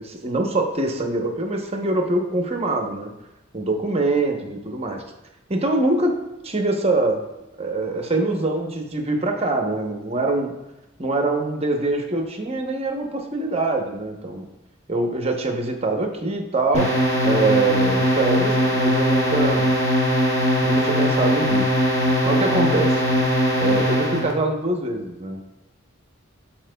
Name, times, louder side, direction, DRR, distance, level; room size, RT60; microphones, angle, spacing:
voice 1, 0.0-3.1 3.5-5.0 5.5-7.2 7.6-10.5 11.0-14.5 14.9-16.9 17.2-19.7 20.6-21.7 22.2-23.0 23.6-25.4, right 2 dB, 30° right, 3 dB, 0.8 m, -24 dB
sound 1, 16.7-24.3, equal, 30° left, 1.5 m, -20 dB
12.5 x 4.4 x 2.2 m, 0.98 s
head